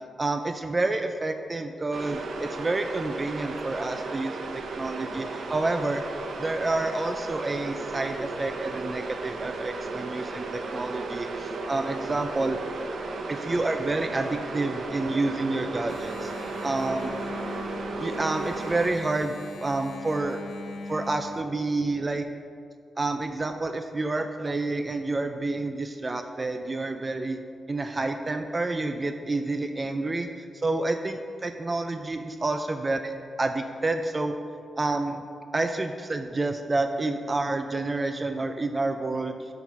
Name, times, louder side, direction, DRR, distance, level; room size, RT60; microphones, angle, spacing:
voice 1, 0.2-4.4 4.8-6.0 6.4-12.6 13.3-16.3 16.6-17.1 18.0-19.4 19.6-20.4 20.9-22.3 23.0-27.4 27.7-33.1 33.4-34.3 34.8-35.2 35.5-39.3, right 2 dB, 25° right, 7 dB, 0.3 m, -29 dB
sound 1, 1.9-18.9, right 3 dB, 65° right, 0.7 m, -35 dB
Engine, 15.9-21.4, left 2 dB, 65° left, 0.8 m, -40 dB
7.2 x 5.8 x 5.3 m, 2.4 s
wide cardioid pair, 120°, 0 cm